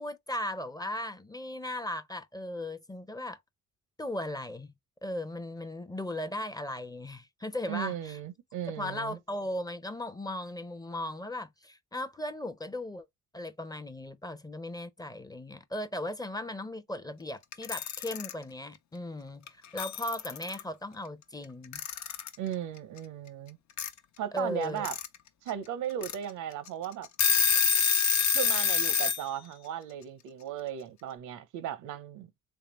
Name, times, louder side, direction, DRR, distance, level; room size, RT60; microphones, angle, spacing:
voice 1, 0.0-3.4 4.0-4.7 5.0-8.2 8.8-13.1 13.3-21.8 24.3-24.9, left 1 dB, 15° left, 0.5 m, -37 dB
voice 2, 7.7-9.2 22.4-23.6 24.2-25.0 25.4-27.1 28.3-32.3, right 10 dB, 85° right, 0.7 m, -36 dB
Alarm / Clock, 17.5-18.3 19.5-19.6 19.8-20.6 21.7-22.3 23.8-23.9 24.6-25.1 25.5-25.6 26.0-26.1 26.7-26.8 27.0-29.2, left 6 dB, 70° left, 0.7 m, -26 dB
3.6 x 3.2 x 3.0 m
cardioid pair, 90°, 30 cm